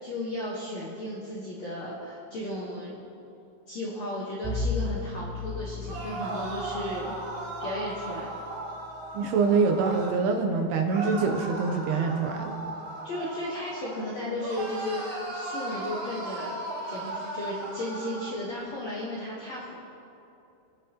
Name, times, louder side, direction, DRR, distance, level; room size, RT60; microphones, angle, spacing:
voice 1, 0.0-3.0 3.7-7.2 7.6-8.3 13.0-16.6 16.9-19.7, left 1 dB, 65° left, -6 dB, 1.7 m, -34 dB
Bowed string instrument, 4.4-9.5, left 3 dB, 10° right, 0.9 m, -36 dB
sound 1, 5.8-10.1 10.9-14.0 14.4-18.3, right 2 dB, 40° right, 2.8 m, -36 dB
voice 2, 9.1-12.5, right 4 dB, 80° right, 3 dB, 2.6 m, -25 dB
23.5 x 8.6 x 2.9 m, 2.7 s
omnidirectional pair, 5.0 m